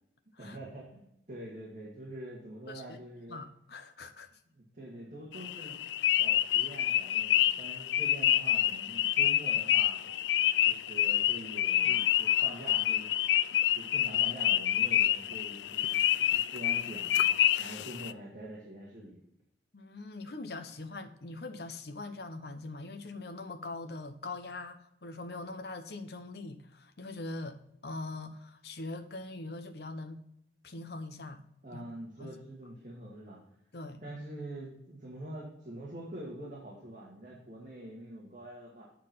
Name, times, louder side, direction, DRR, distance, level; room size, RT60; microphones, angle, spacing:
voice 1, 0.4-3.4 4.5-5.8 6.2-10.0 10.6-13.1 13.7-17.2 17.6-19.2 31.6-33.4 34.0-38.8, right 1 dB, 45° right, -5 dB, 2.0 m, -45 dB
voice 2, 2.7-3.0 3.3-4.3 10.0-10.2 10.7-10.8 19.7-27.6 27.8-30.2 30.6-31.4 31.7-31.8 32.2-32.3 33.7-34.0, left 2 dB, 60° left, 8 dB, 0.9 m, -42 dB
sound 1, 5.3-18.1, left 12 dB, 80° left, 0.3 m, -28 dB
8.4 x 4.6 x 5.7 m, 0.76 s
head